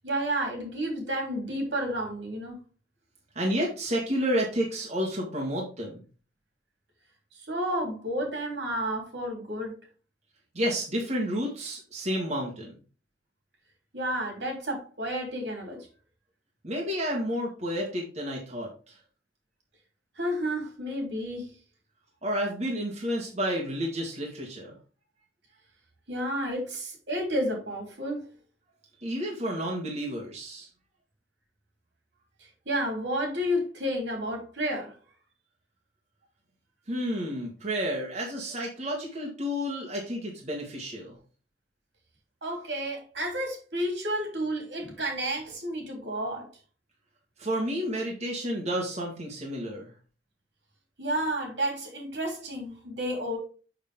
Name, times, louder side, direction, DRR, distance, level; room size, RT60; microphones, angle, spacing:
voice 1, 0.0-2.6 7.4-9.7 13.9-15.9 20.2-21.5 26.1-28.3 32.7-34.9 42.4-46.5 51.0-53.4, equal, 80° right, 3.4 m, -31 dB
voice 2, 3.4-6.0 10.6-12.7 16.6-19.0 22.2-24.8 29.0-30.7 36.9-41.2 47.4-49.9, equal, 40° right, 1.7 m, -30 dB
6.6 x 6.2 x 3.7 m
head